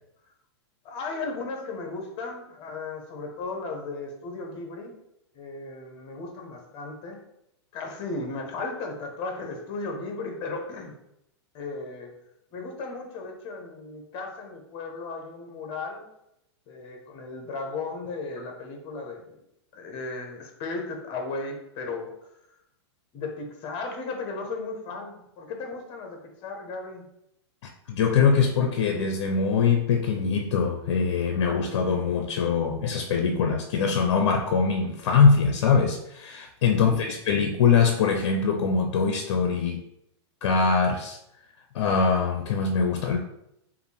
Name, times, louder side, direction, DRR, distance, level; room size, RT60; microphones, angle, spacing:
voice 1, 0.8-5.0 5.3-7.2 7.7-10.9 11.5-12.1 12.5-16.1 16.7-19.3 19.7-22.3 23.1-27.1 36.9-37.0, left 3 dB, 35° left, 3 dB, 1.0 m, -35 dB
voice 2, 27.9-39.8 40.4-41.2 41.7-43.2, left 5 dB, 65° left, 5 dB, 0.6 m, -23 dB
4.9 x 2.6 x 3.3 m, 0.81 s
hypercardioid pair, 145°, 15 cm